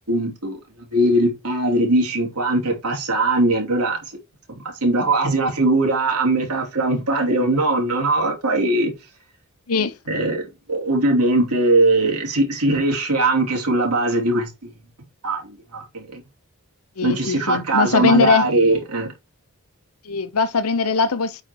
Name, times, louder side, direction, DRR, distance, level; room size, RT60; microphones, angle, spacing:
voice 1, 0.1-4.2 4.5-8.9 10.1-10.4 10.7-14.7 15.2-15.4 15.7-16.2 17.0-19.1, right 2 dB, 90° right, 3.0 m, -20 dB
voice 2, 17.0-18.5 20.0-21.4, left 4 dB, 80° left, 0.8 m, -20 dB
8.8 x 4.4 x 2.9 m
head